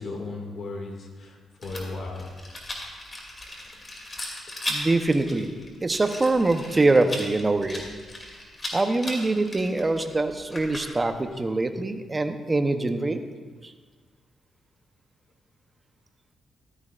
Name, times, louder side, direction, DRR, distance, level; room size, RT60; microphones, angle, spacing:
voice 1, 0.0-2.3 3.5-3.6, left 3 dB, 55° left, 1 dB, 2.1 m, -36 dB
Rattle, 1.6-11.2, left 1 dB, 30° left, 2.7 m, -37 dB
voice 2, 4.7-5.6 5.8-7.9 8.7-13.2 13.6-13.7, right 2 dB, 25° right, 7 dB, 0.8 m, -24 dB
14.5 x 13.0 x 2.5 m, 1.4 s
cardioid pair, 85°, 0 cm